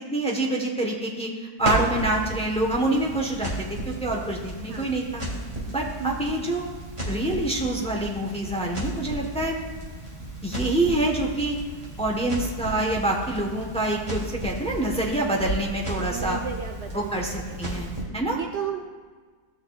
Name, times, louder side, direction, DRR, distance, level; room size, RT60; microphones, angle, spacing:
voice 1, 0.1-5.2 5.7-6.6 7.1-9.6 10.4-11.6 12.0-16.4 16.9-18.4, right 1 dB, 5° left, -1 dB, 0.7 m, -26 dB
Crackle, 1.6-18.0, right 1 dB, 15° right, 2.5 m, -34 dB
voice 2, 16.1-17.6 18.3-18.8, right 7 dB, 90° right, 3 dB, 0.6 m, -33 dB
16.0 x 6.3 x 2.4 m, 1.5 s
omnidirectional pair, 1.8 m